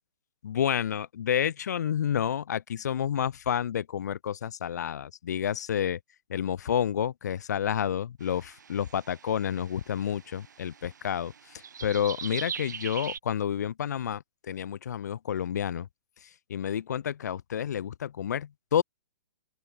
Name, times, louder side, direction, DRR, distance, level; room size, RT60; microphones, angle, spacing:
voice 1, 0.4-6.0 6.3-15.9 16.5-18.8, left 9 dB, 70° left, 0.5 m, -30 dB
sound 1, 8.2-13.2, right 7 dB, 80° right, 2.2 m, -42 dB
open air
hypercardioid pair, 160°, 10 cm